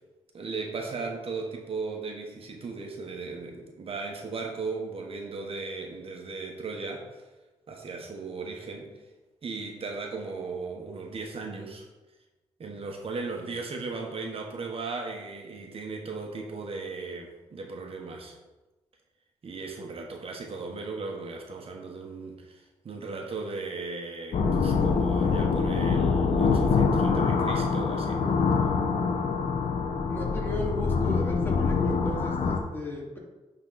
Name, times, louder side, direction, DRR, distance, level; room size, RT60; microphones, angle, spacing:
voice 1, 0.3-7.2 7.7-8.9 9.4-11.9 12.6-18.4 19.4-28.3, right 4 dB, 55° right, 2 dB, 1.2 m, -37 dB
sound 1, 24.3-32.6, left 5 dB, 65° left, 0.9 m, -25 dB
voice 2, 30.1-33.2, left 2 dB, 20° left, -3 dB, 2.4 m, -34 dB
10.0 x 4.0 x 4.0 m, 1.1 s
cardioid pair, 70°, 12 cm